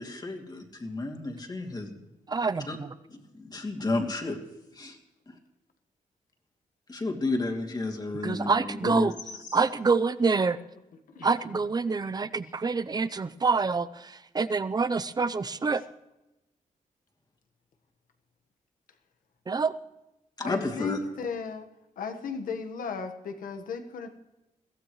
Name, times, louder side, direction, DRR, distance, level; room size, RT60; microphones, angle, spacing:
voice 1, 0.0-2.0 2.7-2.8 3.1-4.4 4.7-5.0 5.3-5.4 6.9-9.1 9.5-9.6 20.4-21.0, left 2 dB, 30° left, 2 dB, 2.7 m, -32 dB
voice 2, 2.3-2.9 8.2-9.1 9.5-10.6 11.2-15.8 19.5-19.7, right 4 dB, 30° right, 14 dB, 0.7 m, -26 dB
voice 3, 11.1-11.6 20.4-21.7 22.0-24.1, left 5 dB, 90° left, 7 dB, 1.5 m, -35 dB
22.0 x 16.0 x 3.2 m, 0.96 s
wide cardioid pair, 120°, 14 cm